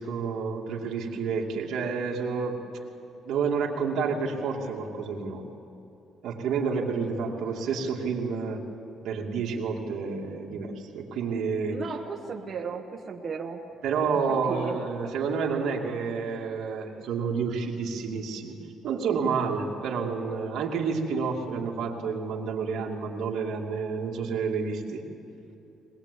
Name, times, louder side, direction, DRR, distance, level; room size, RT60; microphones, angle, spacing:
voice 1, 0.0-2.6 3.2-5.4 6.2-8.6 9.0-11.8 13.8-18.5 18.8-25.0, right 5 dB, 60° right, 0 dB, 2.4 m, -29 dB
voice 2, 11.7-13.7 14.3-14.8 22.7-22.8, right 5 dB, 25° right, 0 dB, 1.3 m, -35 dB
21.5 x 20.5 x 8.2 m, 2.8 s
cardioid pair, 170°, 0 cm